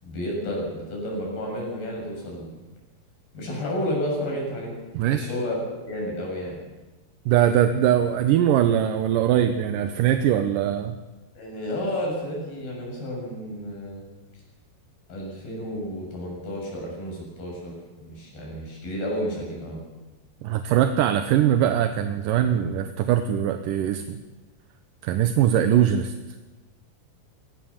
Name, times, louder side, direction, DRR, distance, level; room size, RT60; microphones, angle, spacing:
voice 1, 0.0-2.6 3.3-4.7 5.1-6.6 11.4-14.1 15.1-19.8, equal, 85° left, -1 dB, 9.1 m, -31 dB
voice 2, 4.9-5.3 7.3-11.0 20.4-24.2 25.0-26.1, right 10 dB, 75° right, 8 dB, 2.4 m, -21 dB
23.5 x 19.0 x 7.2 m, 1.2 s
omnidirectional pair, 4.2 m